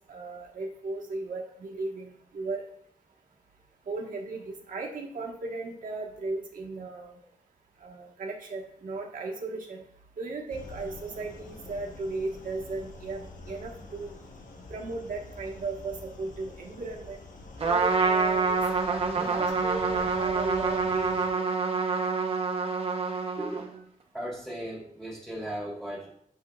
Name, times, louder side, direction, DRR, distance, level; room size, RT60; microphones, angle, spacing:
voice 1, 0.1-2.6 3.9-7.1 7.8-9.8 10.2-14.1 14.7-17.2 17.6-18.6 19.1-21.4, right 3 dB, 75° right, -1 dB, 1.3 m, -36 dB
sound 1, 10.5-21.3, left 2 dB, 70° left, 1.0 m, -46 dB
Trumpet, 17.6-23.8, right 4 dB, 45° right, 0.8 m, -27 dB
voice 2, 23.1-23.8 24.1-26.2, right 1 dB, 5° left, -5 dB, 2.8 m, -37 dB
8.5 x 6.2 x 2.3 m, 0.67 s
wide cardioid pair, 170°, 14 cm